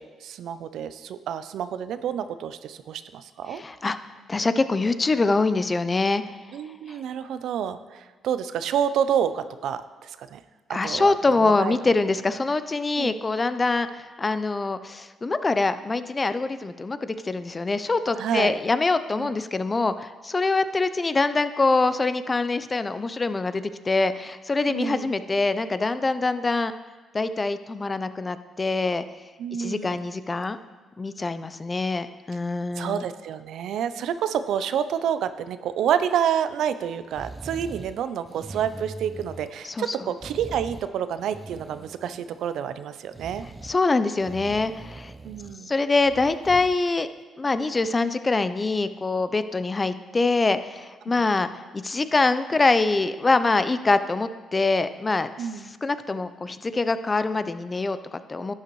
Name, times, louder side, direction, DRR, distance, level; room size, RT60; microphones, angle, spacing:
voice 1, 0.0-3.6 6.5-10.4 10.7-11.2 11.4-11.8 13.0-13.1 18.2-18.6 19.2-19.3 24.7-25.1 29.4-30.1 32.8-43.5 45.2-45.7 51.1-51.2 55.4-55.7, right 9 dB, 75° right, 12 dB, 0.5 m, -28 dB
voice 2, 3.5-4.0 4.3-6.2 6.9-7.0 10.7-13.9 14.2-26.7 27.1-29.0 29.6-30.6 31.0-33.0 39.7-40.0 43.6-45.1 45.7-47.1 47.4-55.5 55.8-58.5, left 3 dB, 25° left, 12 dB, 0.5 m, -24 dB
sound 1, 37.1-37.9 38.2-39.7 40.2-40.9 41.2-42.5 43.1-43.8 44.2-45.6 46.0-46.8 47.2-47.3, right 3 dB, 25° right, 0.5 m, -41 dB
11.5 x 9.5 x 3.1 m, 1.3 s
cardioid pair, 90°, 0 cm